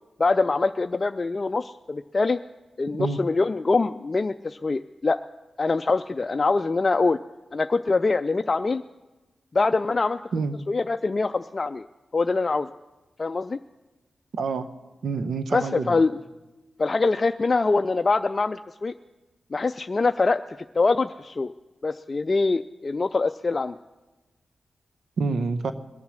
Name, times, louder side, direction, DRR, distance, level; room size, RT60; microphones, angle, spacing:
voice 1, 0.2-2.4 2.8-5.2 5.6-7.2 7.5-8.8 9.5-10.2 10.7-11.9 12.1-12.7 13.2-13.6 15.5-16.1 16.8-18.9 19.5-20.4 20.8-21.5 21.8-23.8, left 3 dB, 45° left, 8 dB, 0.4 m, -24 dB
voice 2, 14.3-14.7 15.0-16.0 25.2-25.7, right 4 dB, 75° right, 11 dB, 0.7 m, -27 dB
21.5 x 7.2 x 6.3 m, 1.1 s
supercardioid pair, 40°, 0 cm